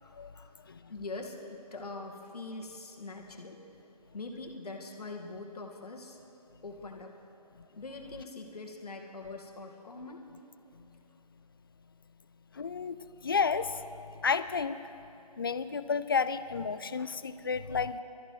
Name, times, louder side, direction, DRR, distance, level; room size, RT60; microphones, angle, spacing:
voice 1, 0.0-0.5 0.9-3.6 4.1-6.2 6.6-7.2 7.8-10.2, left 3 dB, 70° left, 2 dB, 2.0 m, -43 dB
voice 2, 12.6-13.0 13.2-13.8 14.2-14.8 15.4-18.0, left 5 dB, 35° left, 14 dB, 0.4 m, -31 dB
22.5 x 13.5 x 3.9 m, 2.8 s
figure-of-eight pair, 160°, 21 cm